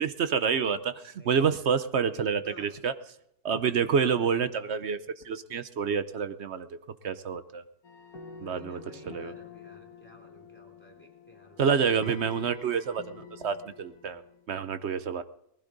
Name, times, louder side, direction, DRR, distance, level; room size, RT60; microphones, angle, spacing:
voice 1, 0.0-2.9 3.4-5.0 5.2-6.7 7.0-7.6 8.4-8.8 9.1-9.3 11.6-14.2 14.5-15.2, right 6 dB, 55° right, 12 dB, 0.9 m, -28 dB
voice 2, 1.2-2.7 3.8-4.5 8.3-12.6, equal, 5° left, 1 dB, 3.5 m, -53 dB
sound 1, 7.8-14.5, left 3 dB, 70° left, 2.0 m, -47 dB
20.0 x 15.5 x 3.9 m, 0.78 s
omnidirectional pair, 1.6 m